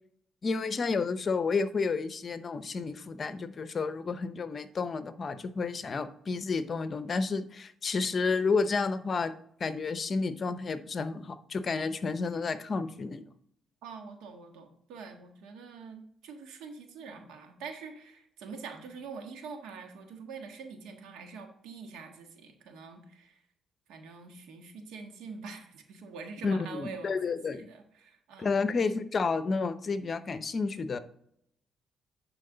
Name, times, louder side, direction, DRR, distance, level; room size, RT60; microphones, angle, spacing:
voice 1, 0.4-9.3 9.6-13.2 26.4-27.7 28.4-31.0, left 4 dB, 40° left, 12 dB, 0.7 m, -31 dB
voice 2, 13.8-23.4 23.9-28.5, right 5 dB, 90° right, 4 dB, 1.5 m, -45 dB
10.5 x 4.6 x 3.9 m, 0.69 s
cardioid pair, 90°, 0 cm